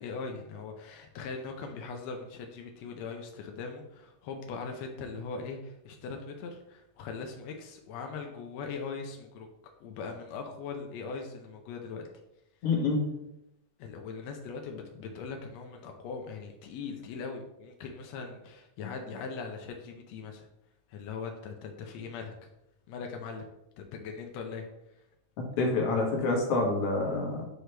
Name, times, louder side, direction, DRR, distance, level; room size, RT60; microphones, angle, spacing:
voice 1, 0.0-9.5 9.8-12.1 13.8-20.5 20.9-22.5 22.9-23.5 23.8-24.6, left 5 dB, 85° left, 3 dB, 1.5 m, -40 dB
voice 2, 12.6-13.0 25.6-27.5, left 3 dB, 55° left, 0 dB, 2.0 m, -27 dB
7.8 x 4.9 x 3.3 m, 0.86 s
omnidirectional pair, 4.0 m